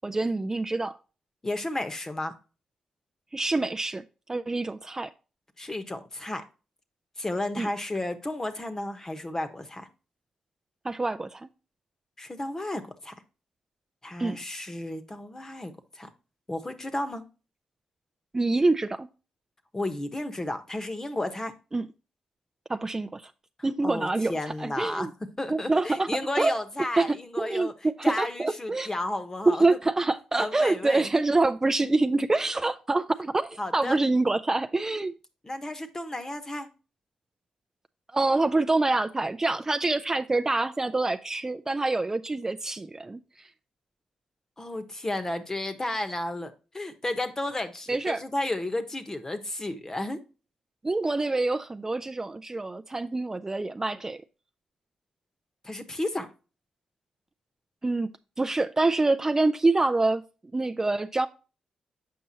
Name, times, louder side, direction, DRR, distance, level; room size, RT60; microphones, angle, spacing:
voice 1, 0.0-1.0 3.3-4.0 4.3-5.1 7.6-7.7 10.8-11.5 14.2-14.4 18.3-19.1 21.7-21.9 22.7-23.3 23.6-25.1 25.5-26.1 26.4-26.5 27.0-28.9 29.5-35.1 38.1-43.5 47.9-48.2 50.8-54.2 57.8-58.1 58.4-60.2 60.5-61.3, right 2 dB, 25° right, 0.5 m, -26 dB
voice 2, 1.4-2.3 5.6-6.4 7.2-9.9 12.2-13.2 14.0-16.1 16.5-17.2 19.7-21.5 23.8-27.7 28.0-29.8 30.4-31.2 33.6-34.0 35.4-36.7 44.6-50.2 55.6-56.3, left 1 dB, 25° left, 1.1 m, -33 dB
7.6 x 5.3 x 2.7 m
supercardioid pair, 55°, 2 cm